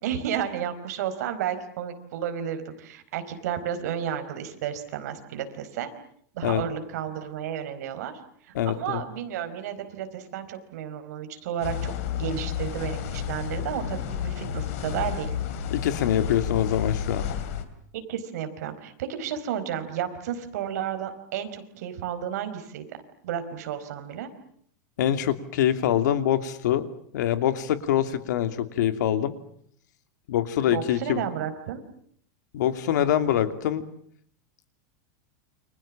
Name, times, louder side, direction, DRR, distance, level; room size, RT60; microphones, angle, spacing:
voice 1, 0.0-5.9 6.3-15.4 17.9-22.8 23.2-24.3 30.7-31.8, right 9 dB, 60° right, 8 dB, 4.5 m, -32 dB
voice 2, 8.5-9.1 15.7-17.2 25.0-26.9 27.1-29.3 30.3-31.2 32.5-33.8, left 10 dB, 70° left, 10 dB, 2.7 m, -24 dB
sound 1, 11.6-17.6, left 9 dB, 50° left, 3.4 m, -31 dB
29.5 x 26.0 x 7.4 m, 0.65 s
supercardioid pair, 175°, 10 cm